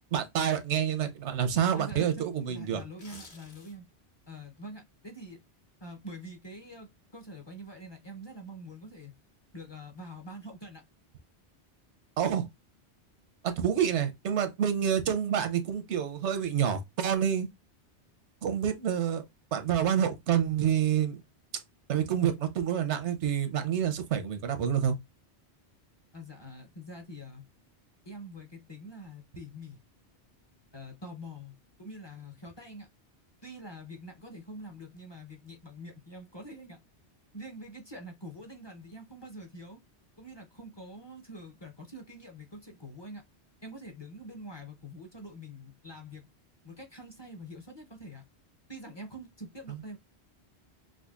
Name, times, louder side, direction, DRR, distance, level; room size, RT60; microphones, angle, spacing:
voice 1, 0.1-2.8 12.2-12.5 13.4-17.5 18.4-19.2 19.5-21.2 21.9-25.0 49.7-49.8, right 9 dB, 90° right, 1.0 m, -28 dB
voice 2, 1.7-3.9 4.3-5.4 5.8-9.1 9.5-10.8 26.1-27.4 28.0-29.8 30.7-31.5 31.8-32.9 33.4-36.8 37.3-39.8 40.2-43.2 43.6-46.2 46.6-48.2 48.7-50.0, equal, 30° left, 0.6 m, -45 dB
sound 1, 2.8-4.0 4.4-4.6, left 2 dB, 45° left, 1.0 m, -51 dB
5.0 x 2.2 x 2.3 m
omnidirectional pair, 1.1 m